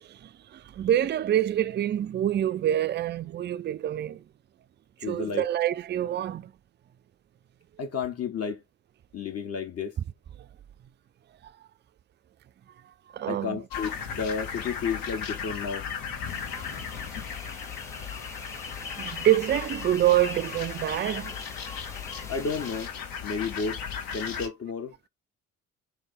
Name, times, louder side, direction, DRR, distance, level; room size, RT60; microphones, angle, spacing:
voice 1, 0.0-4.2 5.0-6.5 11.4-11.5 13.1-13.6 17.3-17.4 19.0-21.4, right 12 dB, 30° right, 0.4 m, -26 dB
voice 2, 5.0-5.4 7.8-8.6 9.1-10.0 13.3-15.9 22.3-22.9 23.2-23.8 24.1-24.9, left 5 dB, 40° left, 1.2 m, -32 dB
sound 1, 13.7-24.5, left 6 dB, 65° left, 1.5 m, -36 dB
sound 2, 16.2-22.9, left 1 dB, 10° left, 0.8 m, -47 dB
5.5 x 2.7 x 3.5 m
hypercardioid pair, 50°, 37 cm